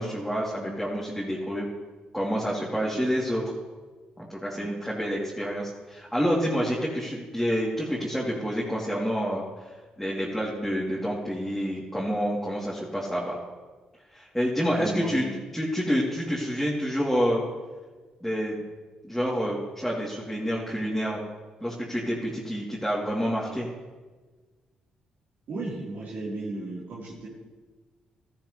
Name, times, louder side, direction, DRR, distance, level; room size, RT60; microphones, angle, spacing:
voice 1, 0.0-1.7 2.1-3.4 4.2-9.4 10.0-13.4 14.1-15.2 15.5-17.4 18.2-18.6 19.0-21.2 21.6-23.7, equal, ahead, -7 dB, 3.4 m, -28 dB
voice 2, 14.6-15.4 25.5-27.3, right 2 dB, 65° right, -6 dB, 4.4 m, -35 dB
15.0 x 13.5 x 3.5 m, 1.3 s
hypercardioid pair, 45°, 3 cm